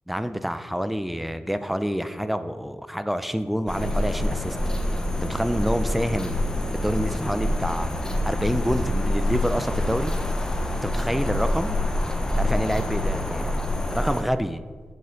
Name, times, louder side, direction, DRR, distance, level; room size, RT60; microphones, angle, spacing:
voice 1, 0.1-4.6 5.2-6.4 6.7-7.9 8.2-10.1 10.8-11.8 12.4-13.5 13.9-14.6, equal, 5° right, 11 dB, 0.5 m, -27 dB
sound 1, 3.7-14.2, left 1 dB, 20° left, 0.9 m, -26 dB
7.7 x 6.2 x 3.9 m, 1.5 s
cardioid pair, 65°, 4 cm